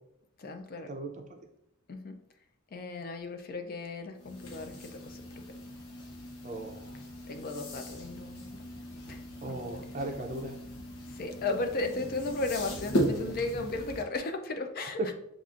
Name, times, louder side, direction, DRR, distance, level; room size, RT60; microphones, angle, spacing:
voice 1, 0.4-0.9 1.9-2.2 2.7-5.4 7.3-8.6 9.1-9.8 11.1-15.1, left 2 dB, 40° left, 6 dB, 0.4 m, -35 dB
sound 1, 4.2-14.0, equal, 90° left, 0.8 m, -37 dB
voice 2, 6.4-7.0 9.4-10.6 15.0-15.1, right 2 dB, 35° right, 3 dB, 0.5 m, -36 dB
6.8 x 2.4 x 2.5 m, 0.75 s
head